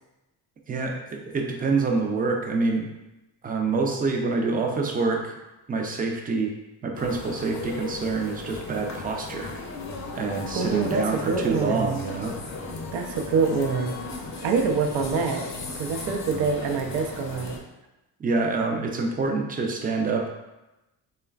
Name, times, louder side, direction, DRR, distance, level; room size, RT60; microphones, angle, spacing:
voice 1, 0.7-2.9 3.4-5.4 5.7-6.5 6.8-9.5 10.1-12.3 18.2-20.3, right 3 dB, 20° right, 2 dB, 0.4 m, -26 dB
sound 1, 6.9-17.6, left 3 dB, 40° left, 0.6 m, -36 dB
voice 2, 10.5-12.0 12.9-13.9 14.4-15.5 15.7-17.6, right 5 dB, 75° right, 2 dB, 0.6 m, -25 dB
3.0 x 2.2 x 2.3 m, 0.99 s
supercardioid pair, 65°, 45 cm